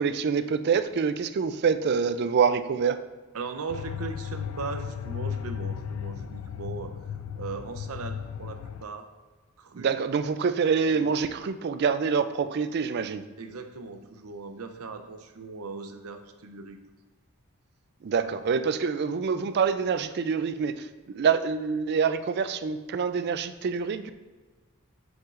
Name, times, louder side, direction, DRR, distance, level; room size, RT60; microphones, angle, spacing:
voice 1, 0.0-3.0 9.7-13.2 18.0-24.1, right 6 dB, 50° right, 11 dB, 0.4 m, -26 dB
voice 2, 3.3-6.9 7.3-9.1 9.6-9.9 10.9-11.2 13.4-16.8, right 4 dB, 85° right, 7 dB, 0.7 m, -38 dB
sound 1, 3.7-8.8, left 8 dB, 75° left, 0.3 m, -35 dB
7.3 x 6.2 x 2.5 m, 1.3 s
head